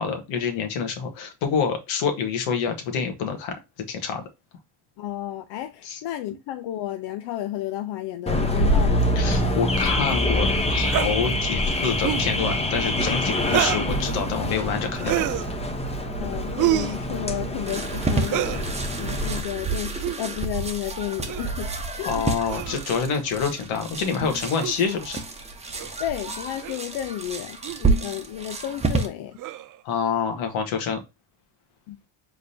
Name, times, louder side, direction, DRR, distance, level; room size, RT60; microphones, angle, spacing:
voice 1, 0.0-3.6 3.9-4.2 5.8-6.0 9.2-15.2 22.1-25.2 29.8-31.0, left 6 dB, 75° left, 1.7 m, -27 dB
voice 2, 5.0-9.1 16.2-18.6 19.0-21.7 22.0-22.2 26.0-29.4 31.9-32.0, left 12 dB, 60° left, 0.7 m, -32 dB
Car / Alarm, 8.3-19.4, left 1 dB, 15° left, 0.9 m, -25 dB
sound 1, 10.8-11.1 11.9-12.3 13.4-13.9 15.0-15.5 16.6-17.0 18.2-18.6 19.9-20.2 21.3-21.5 22.5-22.9 24.6-24.7 25.8-25.9 26.6-26.8 27.6-27.8 29.4-29.8, right 13 dB, 40° right, 0.5 m, -27 dB
sound 2, 17.6-29.1, right 3 dB, 15° right, 1.0 m, -29 dB
4.8 x 3.8 x 2.7 m
supercardioid pair, 105°, 48 cm